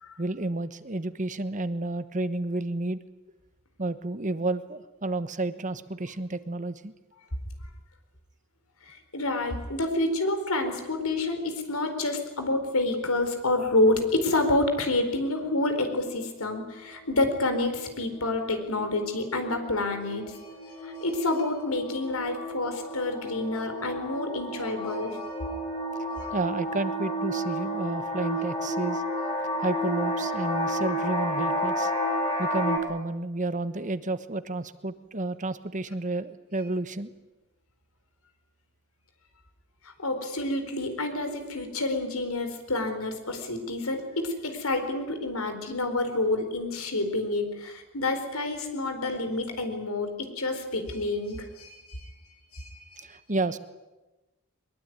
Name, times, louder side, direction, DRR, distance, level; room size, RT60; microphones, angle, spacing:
voice 1, 0.2-3.0 3.8-6.9 26.3-29.0 29.6-31.9 32.4-37.1 53.0-53.6, right 2 dB, 35° right, 12 dB, 1.2 m, -31 dB
voice 2, 8.9-20.4 20.6-25.2 40.0-52.1 52.5-53.1, left 2 dB, 90° left, 7 dB, 4.5 m, -28 dB
sound 1, 14.9-15.0 15.5-15.7 15.9-16.2 16.5-32.8, equal, 30° left, 6.3 m, -32 dB
22.5 x 22.0 x 9.5 m, 1.1 s
head